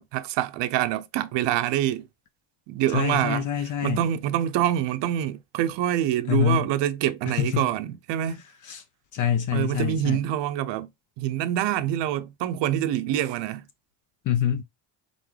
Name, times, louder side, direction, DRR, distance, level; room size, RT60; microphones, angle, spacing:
voice 1, 0.0-2.1 2.7-8.4 9.5-10.9 11.2-13.7, right 12 dB, 65° right, 0.6 m, -26 dB
voice 2, 2.9-4.0 6.3-6.7 7.3-7.7 8.6-8.8 9.1-10.2 14.2-14.6, left 9 dB, 45° left, 0.5 m, -25 dB
3.8 x 3.7 x 3.1 m
supercardioid pair, 100°, 47 cm